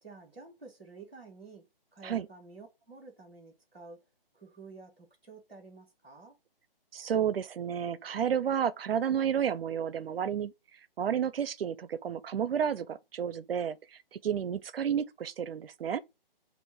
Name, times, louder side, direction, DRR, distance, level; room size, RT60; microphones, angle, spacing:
voice 1, 0.0-1.7 1.9-4.0 4.3-6.4, right 3 dB, 10° right, 0.6 m, -50 dB
voice 2, 6.9-10.5 11.0-13.8 14.1-16.0, right 8 dB, 75° right, 0.5 m, -31 dB
4.8 x 2.5 x 4.3 m
hypercardioid pair, 180°, 29 cm